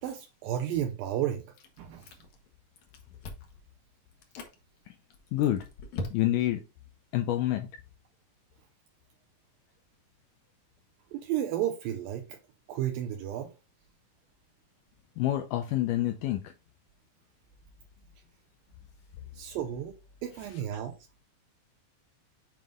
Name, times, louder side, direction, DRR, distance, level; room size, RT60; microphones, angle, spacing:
voice 1, 0.0-1.4 1.8-2.1 11.1-12.4 12.7-13.5 19.3-21.0, right 11 dB, 80° right, 2.4 m, -32 dB
Chewing mastication, 1.5-2.5 2.8-3.6 4.1-4.5 5.1-6.6, left 2 dB, 65° left, 2.1 m, -41 dB
voice 2, 5.3-5.6 6.1-6.6 7.1-7.7 15.2-16.5, left 13 dB, 90° left, 1.8 m, -27 dB
7.6 x 5.2 x 2.4 m
omnidirectional pair, 4.2 m